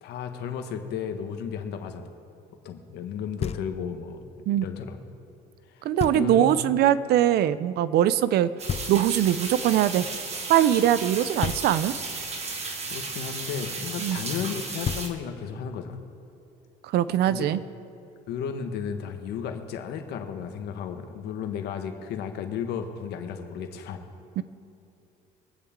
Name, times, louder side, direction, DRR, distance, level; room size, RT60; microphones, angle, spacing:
voice 1, 0.0-2.1 2.6-5.0 5.7-5.9 6.1-6.5 12.9-16.0 17.3-17.4 18.3-24.0, left 7 dB, 75° left, 6 dB, 1.3 m, -34 dB
Knock, 3.4-4.1 6.0-6.6 8.7-9.5 11.4-12.2 14.5-14.6 14.8-15.6, left 8 dB, 40° left, 0.4 m, -34 dB
voice 2, 5.8-8.5 8.9-10.1 10.5-11.9 14.0-14.2 16.8-17.6 24.4-24.5, right 11 dB, 75° right, 15 dB, 0.6 m, -22 dB
sound 1, 8.6-15.1, right 3 dB, 40° right, 1.7 m, -34 dB
23.0 x 8.5 x 3.7 m, 2.6 s
cardioid pair, 110°, 17 cm